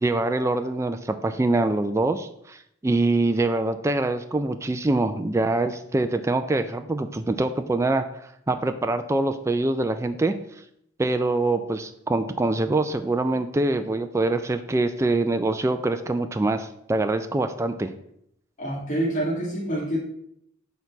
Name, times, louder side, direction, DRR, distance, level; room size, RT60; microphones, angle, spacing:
voice 1, 0.0-10.3 11.0-17.9, right 2 dB, 15° right, 8 dB, 0.3 m, -24 dB
voice 2, 18.6-20.0, right 1 dB, 40° left, -5 dB, 1.8 m, -26 dB
6.4 x 4.0 x 5.9 m, 0.73 s
head